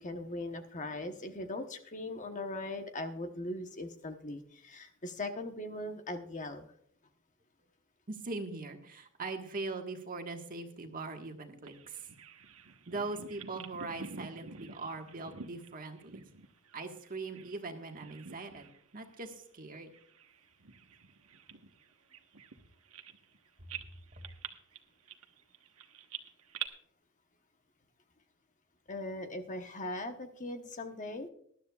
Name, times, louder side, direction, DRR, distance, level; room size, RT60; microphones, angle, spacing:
voice 1, 0.0-6.7 28.9-31.3, left 2 dB, 35° left, 6 dB, 1.1 m, -40 dB
voice 2, 8.1-12.0 12.9-16.2 16.7-19.9 23.6-23.7 24.1-24.2, right 3 dB, 40° right, 4 dB, 1.5 m, -41 dB
Bird vocalization bird call bird song, 11.7-17.6 17.9-18.8 19.1-19.3 19.9-23.4 23.7-26.7, right 7 dB, 75° right, 1.2 m, -47 dB
19.5 x 12.0 x 2.4 m, 0.63 s
head